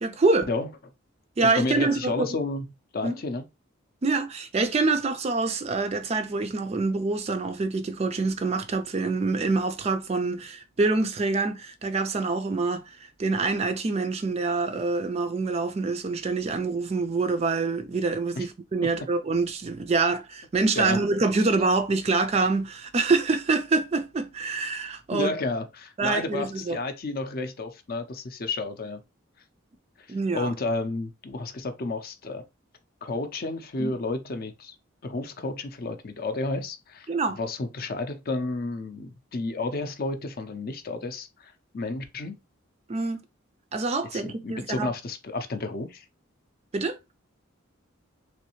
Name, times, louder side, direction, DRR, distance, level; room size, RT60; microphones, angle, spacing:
voice 1, 0.0-0.5 1.4-2.4 3.0-3.1 4.0-25.3 26.0-26.8 30.1-30.5 33.8-33.9 37.1-37.4 42.9-43.2 43.7-44.9 46.7-47.0, right 3 dB, 30° right, 0.3 m, -26 dB
voice 2, 1.4-2.7 2.9-3.4 18.4-18.5 20.8-21.0 25.1-29.0 30.0-30.1 30.3-32.4 33.0-34.8 35.0-42.4 44.1-46.0, left 2 dB, 45° left, 0.5 m, -31 dB
3.2 x 3.0 x 3.0 m
head